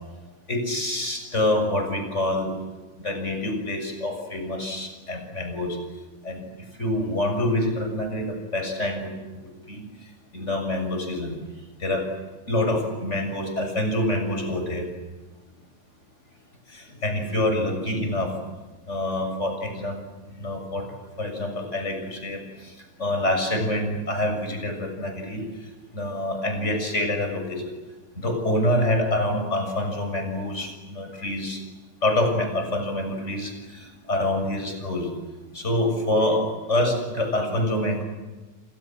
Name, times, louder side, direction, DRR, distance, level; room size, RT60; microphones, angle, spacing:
voice 1, 0.5-2.5 3.0-5.8 6.2-6.4 6.8-9.8 10.3-11.4 11.8-12.1 12.5-14.8 16.7-18.3 18.9-20.0 20.4-20.9 21.2-22.4 23.0-25.4 25.9-27.6 28.2-31.6 32.0-35.1 35.5-36.4 36.7-38.0, left 1 dB, 30° left, 5 dB, 7.2 m, -26 dB
29.5 x 26.5 x 7.6 m, 1.2 s
omnidirectional pair, 2.3 m